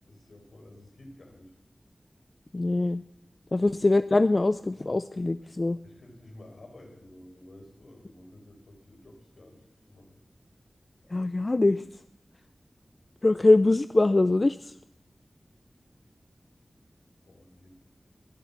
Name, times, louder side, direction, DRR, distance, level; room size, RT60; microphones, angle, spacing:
voice 1, 0.1-1.5 3.5-3.7 5.8-10.2 17.3-17.7, left 1 dB, 80° left, 2 dB, 4.5 m, -51 dB
voice 2, 2.5-3.0 3.5-5.8 11.1-11.8 13.2-14.7, left 2 dB, 45° left, 13 dB, 0.5 m, -23 dB
22.0 x 8.0 x 7.1 m, 0.81 s
wide cardioid pair, 50°, 0 cm